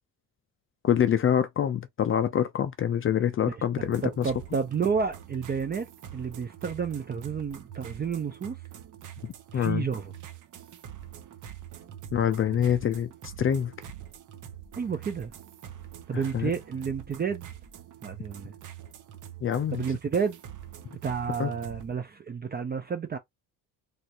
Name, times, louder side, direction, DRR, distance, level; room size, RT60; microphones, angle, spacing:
voice 1, 0.8-4.3 9.2-9.9 12.1-13.7 16.1-16.5 19.4-19.8 21.4-21.5, left 9 dB, 40° left, 0.4 m, -26 dB
voice 2, 3.5-8.6 9.5-10.1 14.8-15.3 16.1-17.5 18.0-18.5 19.7-20.4 21.0-23.2, right 6 dB, 30° right, 0.5 m, -31 dB
sound 1, 3.8-21.9, right 10 dB, 55° right, 0.7 m, -45 dB
3.3 x 2.4 x 2.8 m
cardioid pair, 120°, 36 cm